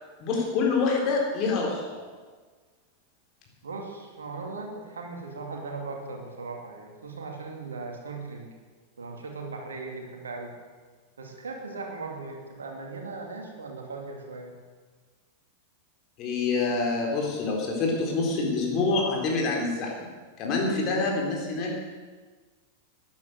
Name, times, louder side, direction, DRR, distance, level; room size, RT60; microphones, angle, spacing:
voice 1, 0.2-2.0 16.2-20.1 20.4-21.8, left 3 dB, 35° left, 0 dB, 4.1 m, -26 dB
voice 2, 3.6-8.5 9.0-10.5 11.2-14.6, right 3 dB, 70° right, 2 dB, 2.5 m, -38 dB
13.5 x 10.5 x 7.9 m, 1.4 s
figure-of-eight pair, 90°, 0 cm